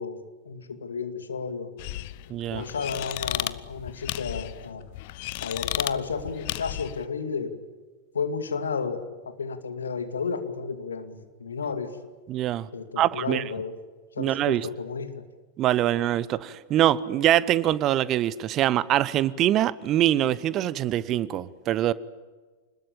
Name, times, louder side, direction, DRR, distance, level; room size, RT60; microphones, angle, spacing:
voice 1, 0.0-1.7 2.5-4.9 5.4-7.5 8.1-12.0 12.7-13.8 14.1-15.2, left 5 dB, 70° left, 2.4 m, -32 dB
sound 1, 1.8-7.0, left 17 dB, 50° left, 0.9 m, -34 dB
voice 2, 2.3-2.7 12.3-12.7 13.0-13.4 14.2-14.7 15.6-21.9, right 12 dB, 35° right, 1.0 m, -24 dB
26.5 x 20.5 x 8.8 m
figure-of-eight pair, 90°, 0 cm